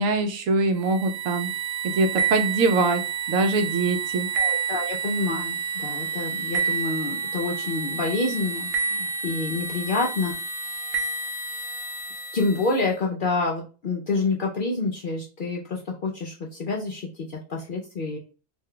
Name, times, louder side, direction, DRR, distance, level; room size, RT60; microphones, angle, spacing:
voice 1, 0.0-1.5 1.8-3.0 3.3-4.3, right 3 dB, 80° right, 7 dB, 1.0 m, -23 dB
sound 1, 0.8-12.9, right 5 dB, 65° right, 0.8 m, -29 dB
voice 2, 4.4-10.3 12.3-18.2, left 3 dB, 60° left, -1 dB, 0.5 m, -28 dB
2.6 x 2.2 x 3.6 m, 0.35 s
omnidirectional pair, 1.4 m